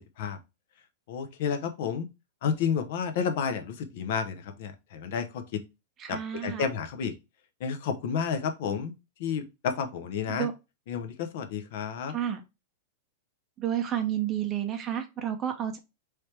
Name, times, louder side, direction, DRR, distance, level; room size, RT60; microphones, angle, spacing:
voice 1, 1.1-2.1 2.4-5.6 6.1-7.1 7.6-8.9 9.2-10.5 10.9-12.1, left 6 dB, 50° left, 0.7 m, -31 dB
voice 2, 6.0-6.7 10.3-10.5 12.1-12.4 13.6-15.8, right 10 dB, 20° right, 0.6 m, -30 dB
4.4 x 3.3 x 3.3 m
supercardioid pair, 170°, 0 cm